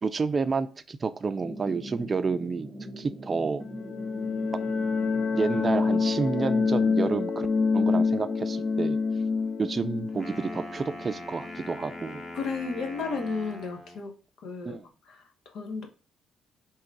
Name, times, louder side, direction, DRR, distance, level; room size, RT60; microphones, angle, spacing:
voice 1, 0.0-2.7 3.0-3.7 5.3-7.5 7.7-9.0 9.6-12.2 14.6-14.9, right 4 dB, 35° right, 11 dB, 0.4 m, -29 dB
sound 1, 1.4-7.2, right 1 dB, ahead, 1.4 m, -42 dB
sound 2, 3.6-12.2, left 4 dB, 45° left, 0.5 m, -27 dB
Wind instrument woodwind instrument, 10.1-14.1, left 1 dB, 20° left, 1.2 m, -42 dB
voice 2, 12.3-14.1 14.4-14.8 15.1-15.9, left 4 dB, 75° left, 4 dB, 1.1 m, -33 dB
3.6 x 3.0 x 4.6 m, 0.36 s
cardioid pair, 90°, 0 cm